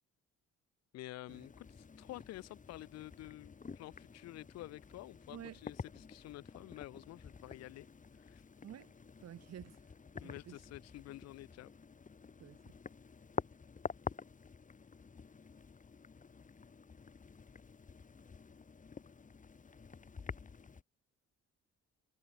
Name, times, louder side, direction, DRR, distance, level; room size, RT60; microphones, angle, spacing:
voice 1, 0.9-7.9 8.2-8.4 10.2-11.7, left 16 dB, 60° left, 0.4 m, -50 dB
sound 1, 1.3-20.8, left 5 dB, 25° left, 1.1 m, -49 dB
voice 2, 5.3-5.6 8.6-9.9 10.1-10.6 12.4-12.8, right 10 dB, 55° right, 1.6 m, -51 dB
cardioid pair, 90°, 30 cm